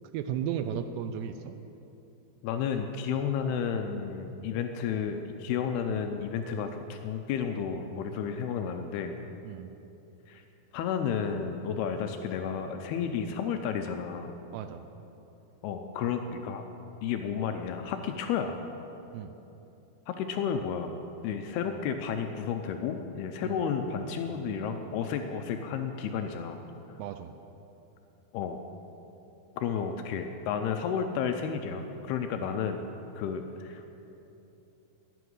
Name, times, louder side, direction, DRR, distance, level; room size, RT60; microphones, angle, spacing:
voice 1, 0.1-1.6 9.4-9.7 14.5-14.8 19.1-19.3 23.4-23.6 27.0-27.3 32.4-32.5, right 9 dB, 80° right, 9 dB, 2.6 m, -35 dB
voice 2, 2.4-9.1 10.3-10.4 10.7-14.3 15.6-16.6 17.0-18.6 20.1-20.9 21.2-26.6 28.3-28.6 29.6-32.8 33.1-33.8, left 7 dB, 80° left, 6 dB, 2.3 m, -32 dB
11.0 x 10.0 x 9.6 m, 3.0 s
omnidirectional pair, 5.2 m